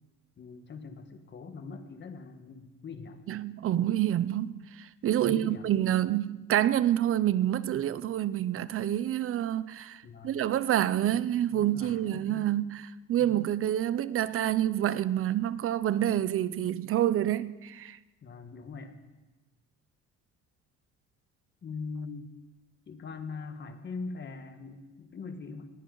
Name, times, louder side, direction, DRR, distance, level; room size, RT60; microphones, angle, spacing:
voice 1, 0.4-3.2 5.2-5.8 10.0-10.4 11.5-12.5 13.2-13.3 18.2-18.9 21.6-22.3 22.9-25.7, left 4 dB, 35° left, 1.5 m, -42 dB
voice 2, 3.3-18.0, right 12 dB, 45° right, 0.6 m, -28 dB
20.5 x 16.0 x 3.9 m
cardioid pair, 145°, 32 cm